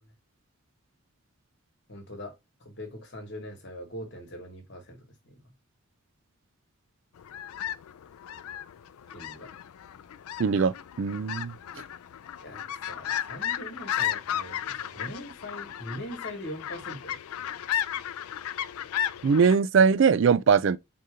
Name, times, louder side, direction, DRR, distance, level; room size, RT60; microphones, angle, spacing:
voice 1, 1.9-2.3 2.6-5.4 9.1-9.5 12.4-17.2, equal, 55° left, 1.4 m, -41 dB
sound 1, 7.2-19.6, left 10 dB, 85° left, 0.4 m, -34 dB
voice 2, 10.4-11.5 19.2-20.8, right 6 dB, 60° right, 0.3 m, -21 dB
3.9 x 2.8 x 4.9 m
head